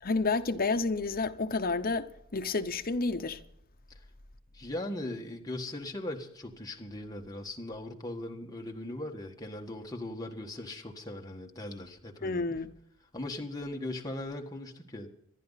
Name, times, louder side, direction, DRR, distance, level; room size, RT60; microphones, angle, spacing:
voice 1, 0.0-3.4 12.2-12.7, left 3 dB, 45° left, 0.9 m, -30 dB
voice 2, 4.5-12.4 13.1-15.1, left 1 dB, 20° left, 1.6 m, -39 dB
26.0 x 10.5 x 4.1 m
head